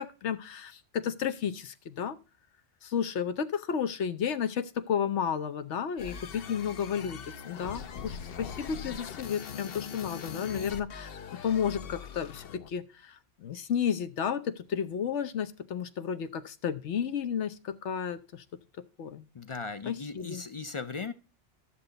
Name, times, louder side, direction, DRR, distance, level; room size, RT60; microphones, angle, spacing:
voice 1, 0.0-2.2 2.8-7.2 7.4-11.2 11.4-18.4 19.0-19.2 19.8-20.4, left 7 dB, 80° left, 1.1 m, -32 dB
sound 1, 6.0-12.7, left 7 dB, 60° left, 0.9 m, -41 dB
voice 2, 19.3-21.1, left 4 dB, 45° left, 0.4 m, -37 dB
13.0 x 6.9 x 3.9 m
omnidirectional pair, 1.2 m